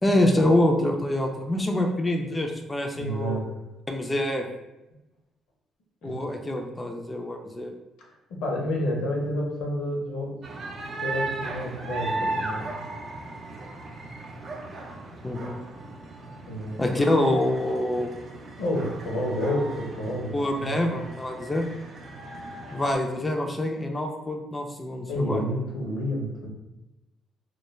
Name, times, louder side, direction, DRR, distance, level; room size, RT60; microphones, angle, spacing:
voice 1, 0.0-3.4 3.9-4.4 6.0-7.7 15.2-15.6 16.8-18.1 20.3-21.7 22.7-25.5, left 1 dB, 20° left, 2 dB, 0.3 m, -25 dB
voice 2, 2.9-3.4 6.0-6.1 8.4-10.4 11.0-12.6 16.5-16.8 18.6-20.7 25.1-26.5, equal, 85° left, -1 dB, 0.6 m, -29 dB
sound 1, 10.4-23.0, right 2 dB, 45° right, 0.5 m, -36 dB
2.2 x 2.1 x 3.0 m, 0.97 s
supercardioid pair, 80°, 0 cm